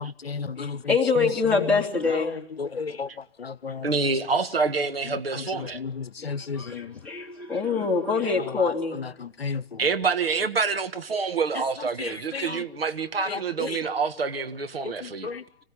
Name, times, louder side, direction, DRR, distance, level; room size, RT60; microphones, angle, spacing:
voice 1, 0.0-1.8 2.1-3.1 3.4-3.9 5.1-7.0 8.5-9.8 12.0-12.6 13.3-13.8 14.8-15.4, left 5 dB, 75° left, 0.9 m, -34 dB
voice 2, 0.6-2.4 6.2-9.0, left 4 dB, 5° left, 2.8 m, -25 dB
voice 3, 3.8-5.8 9.8-15.3, right 4 dB, 70° right, 1.6 m, -27 dB
26.5 x 15.5 x 10.0 m
figure-of-eight pair, 125°, 31 cm